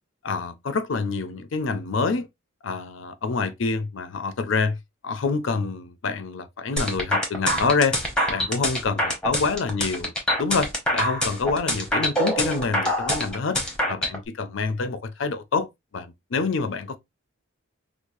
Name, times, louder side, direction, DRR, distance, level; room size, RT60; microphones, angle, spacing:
voice 1, 0.2-2.3 2.6-4.8 5.0-8.0 8.3-10.1 10.4-13.6 13.9-17.0, left 4 dB, 60° left, 0.5 m, -26 dB
sound 1, 6.8-14.2, equal, 5° left, 0.8 m, -25 dB
4.7 x 2.1 x 2.5 m
head